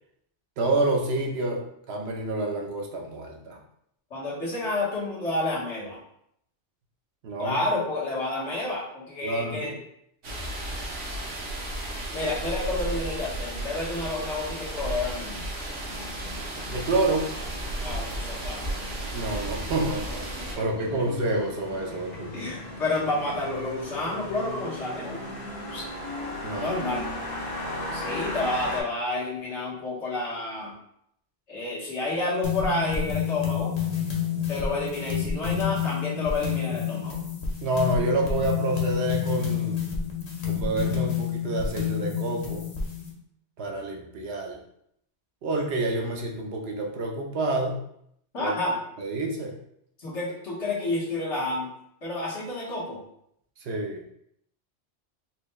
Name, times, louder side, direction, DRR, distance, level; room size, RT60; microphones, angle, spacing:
voice 1, 0.6-1.6 1.9-3.6 7.2-7.6 9.2-9.7 12.2-12.3 16.7-17.3 19.1-20.3 20.6-22.5 26.4-26.7 37.6-39.8 40.5-42.6 43.6-44.6 45.4-47.8 48.4-48.5 49.0-49.5 53.6-54.0, right 2 dB, 65° right, 1 dB, 0.8 m, -28 dB
voice 2, 4.1-6.0 7.4-9.7 12.1-15.4 17.8-18.8 20.6-20.7 22.3-25.2 25.7-25.8 26.5-27.1 27.9-30.7 31.5-33.7 34.5-37.2 48.3-48.7 50.0-51.7 52.0-53.0, left 2 dB, 75° left, -6 dB, 1.5 m, -30 dB
sound 1, 10.2-20.6, right 1 dB, 85° right, 1.3 m, -34 dB
sound 2, 15.8-28.8, left 1 dB, 60° left, 1.3 m, -37 dB
sound 3, 32.4-43.1, left 8 dB, 40° left, 0.7 m, -29 dB
4.4 x 2.2 x 3.1 m, 0.73 s
omnidirectional pair, 1.2 m